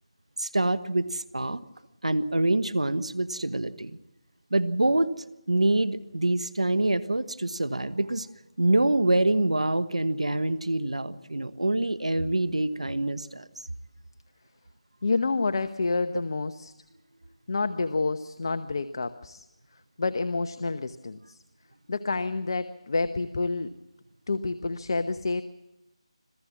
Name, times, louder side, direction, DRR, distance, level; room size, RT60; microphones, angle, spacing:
voice 1, 0.4-1.6 2.0-4.0 4.5-5.1 5.5-8.3 8.6-13.4, right 2 dB, 90° right, 14 dB, 1.2 m, -25 dB
voice 2, 15.0-16.7 17.5-19.5 20.0-21.4 21.9-23.7 24.3-25.4, left 3 dB, 50° left, 10 dB, 1.0 m, -28 dB
26.5 x 16.0 x 7.3 m, 0.99 s
figure-of-eight pair, 165°, 3 cm